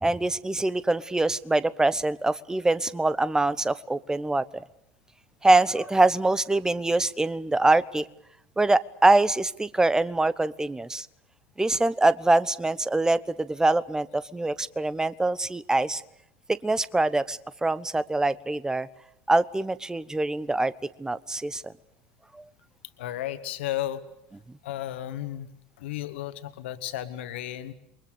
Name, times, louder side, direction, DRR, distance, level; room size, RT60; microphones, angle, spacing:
voice 1, 0.0-4.6 5.4-8.0 8.6-11.1 11.6-16.0 16.5-18.9 19.3-20.7 21.0-21.7 22.3-22.4, right 2 dB, 10° right, 18 dB, 0.9 m, -24 dB
voice 2, 23.0-24.0 24.6-25.5 25.8-27.7, left 13 dB, 65° left, 10 dB, 1.8 m, -33 dB
28.5 x 23.0 x 6.8 m, 0.74 s
figure-of-eight pair, 70°, 7 cm